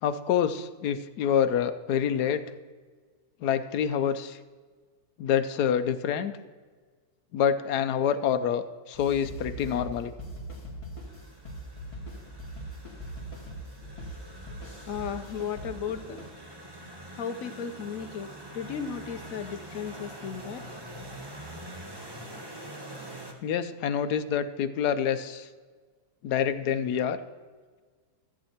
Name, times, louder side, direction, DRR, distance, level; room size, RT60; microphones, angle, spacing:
voice 1, 0.0-2.4 3.4-4.4 5.2-6.3 7.3-10.1 23.4-25.5 26.2-27.2, left 8 dB, 85° left, 10 dB, 1.2 m, -27 dB
sound 1, 8.9-16.3, right 1 dB, 20° left, 2.2 m, -41 dB
sound 2, 11.1-23.3, right 1 dB, 15° right, 1.2 m, -45 dB
voice 2, 14.9-16.2 17.2-20.6, left 7 dB, 65° left, 10 dB, 1.1 m, -35 dB
14.0 x 8.2 x 4.4 m, 1.5 s
omnidirectional pair, 1.7 m